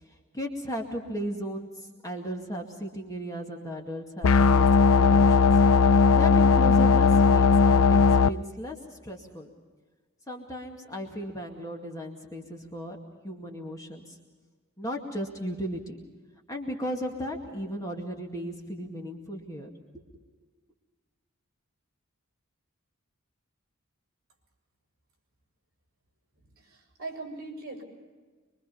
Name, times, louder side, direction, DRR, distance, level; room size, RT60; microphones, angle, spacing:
voice 1, 0.3-5.4 6.1-9.5 10.3-13.0 13.2-14.2 14.8-16.0 16.5-19.7, equal, 15° left, 0 dB, 2.2 m, -36 dB
sound 1, 4.2-8.3, left 5 dB, 85° left, 0.6 m, -18 dB
voice 2, 26.3-27.8, right 3 dB, 45° right, 1 dB, 6.7 m, -41 dB
24.0 x 24.0 x 5.6 m, 1.4 s
head